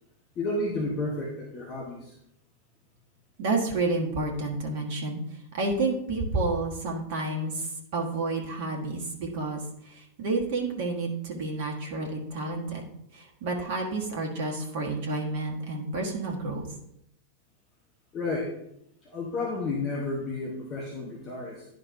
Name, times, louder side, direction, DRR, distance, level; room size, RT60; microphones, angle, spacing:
voice 1, 0.4-2.1 18.1-18.5 19.0-21.6, left 2 dB, 30° left, -2 dB, 1.3 m, -31 dB
voice 2, 3.4-16.7, right 3 dB, 50° right, 0 dB, 1.4 m, -30 dB
11.0 x 5.2 x 2.7 m, 0.79 s
figure-of-eight pair, 90°, 0 cm